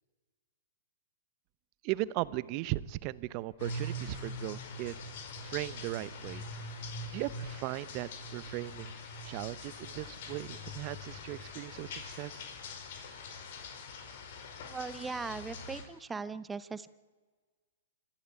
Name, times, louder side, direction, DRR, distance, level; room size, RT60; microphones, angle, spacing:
voice 1, 1.8-5.0 5.4-6.4 7.1-8.9 9.2-12.4, right 18 dB, 40° right, 18 dB, 0.9 m, -37 dB
sound 1, 3.6-15.8, left 2 dB, 55° left, 4.9 m, -43 dB
voice 2, 14.7-16.9, right 4 dB, 10° right, 15 dB, 0.9 m, -39 dB
25.5 x 15.0 x 8.4 m, 1.4 s
hypercardioid pair, 120°, 0 cm